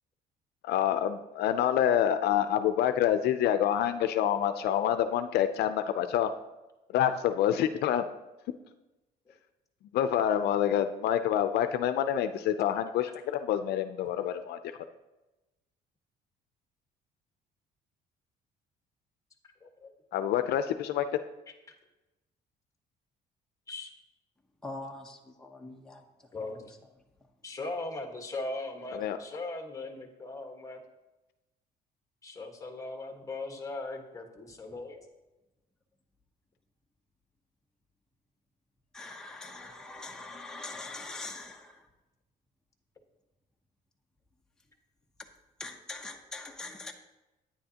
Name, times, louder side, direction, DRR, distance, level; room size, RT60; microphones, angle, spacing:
voice 1, 0.6-6.3 6.9-8.0 9.9-14.6 20.1-21.1 28.9-29.2, left 10 dB, 75° left, 0.5 m, -27 dB
voice 2, 24.6-26.5 38.9-41.9 45.6-46.9, left 2 dB, 5° left, 0.8 m, -43 dB
voice 3, 26.3-26.7 27.4-30.8 32.2-35.0, left 2 dB, 20° left, 1.4 m, -39 dB
10.0 x 9.8 x 2.9 m
cardioid pair, 110°, 17 cm